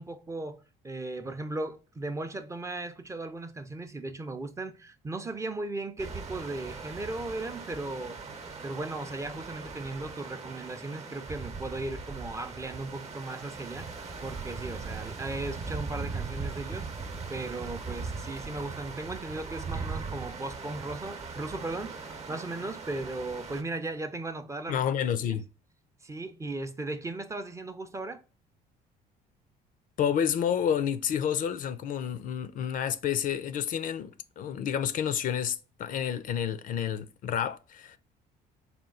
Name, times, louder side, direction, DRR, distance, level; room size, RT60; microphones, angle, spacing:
voice 1, 0.0-8.2 8.6-24.8 25.2-25.4 26.0-28.2, right 2 dB, 15° right, 0.5 m, -37 dB
sound 1, 6.0-23.6, right 4 dB, 40° right, 0.8 m, -39 dB
voice 2, 24.7-25.5 30.0-38.0, left 9 dB, 55° left, 0.4 m, -29 dB
4.2 x 2.3 x 3.6 m
cardioid pair, 110°, 17 cm